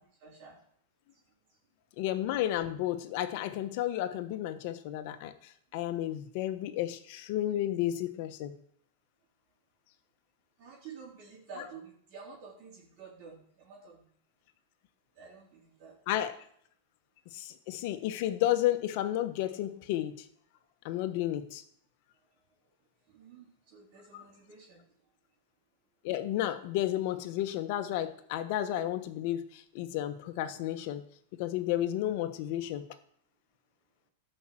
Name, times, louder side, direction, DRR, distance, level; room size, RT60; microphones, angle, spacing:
voice 1, 0.2-0.6 1.1-1.2 1.5-1.6 10.6-14.1 15.1-16.0 22.3-22.4 22.7-22.8 23.1-24.8, right 5 dB, 55° right, -4 dB, 3.6 m, -50 dB
voice 2, 2.0-8.5 16.1-16.3 17.3-20.3 20.8-21.6 24.1-24.2 26.0-31.0 31.3-32.8, left 13 dB, 55° left, 10 dB, 1.2 m, -32 dB
12.5 x 5.6 x 7.6 m, 0.66 s
hypercardioid pair, 115°, 0 cm